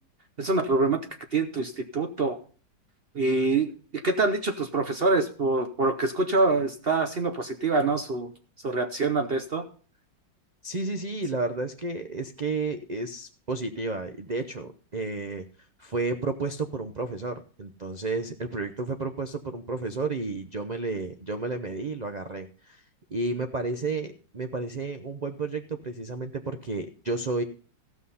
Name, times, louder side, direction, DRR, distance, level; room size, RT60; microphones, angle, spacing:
voice 1, 0.4-1.0 1.3-2.4 3.1-8.3 8.6-9.6, right 3 dB, 45° right, 6 dB, 0.8 m, -25 dB
voice 2, 10.6-15.5 15.8-22.8 23.1-27.4, right 3 dB, 70° right, 7 dB, 0.4 m, -32 dB
15.0 x 6.0 x 5.6 m, 0.40 s
omnidirectional pair, 1.9 m